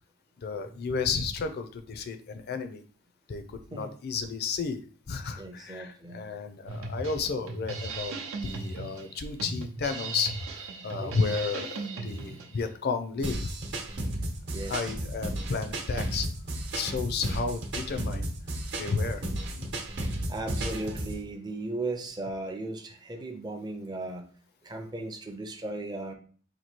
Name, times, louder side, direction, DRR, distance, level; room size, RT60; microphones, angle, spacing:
voice 1, 0.4-2.8 3.3-4.8 5.1-8.1 8.4-13.5 14.7-16.3 16.7-18.3 18.8-19.2 19.5-19.7, left 4 dB, 50° left, 8 dB, 0.4 m, -32 dB
voice 2, 5.4-6.2 11.0-11.3 11.9-12.2 14.1-14.3 14.5-14.9 20.3-24.3 24.6-26.1, right 2 dB, 20° right, 3 dB, 0.5 m, -37 dB
Drum kit, 6.7-12.6, right 3 dB, 80° right, 0.7 m, -37 dB
sound 1, 13.2-21.2, right 1 dB, 55° right, 0.9 m, -33 dB
2.9 x 2.7 x 4.4 m, 0.43 s
head